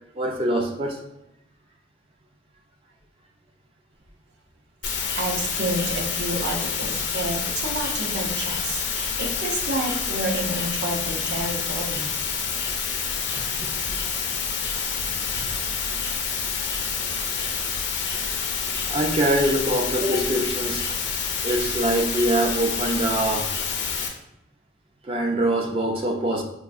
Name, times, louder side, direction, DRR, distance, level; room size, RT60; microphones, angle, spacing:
voice 1, 0.2-1.0 13.5-14.0 18.9-20.9 21.4-23.5 25.0-26.4, right 1 dB, 30° right, 3 dB, 0.3 m, -24 dB
sound 1, 4.8-24.1, left 6 dB, 75° left, 0.5 m, -28 dB
voice 2, 5.2-12.1, right 1 dB, 70° right, 1 dB, 0.6 m, -29 dB
4.5 x 2.3 x 2.5 m, 0.87 s
head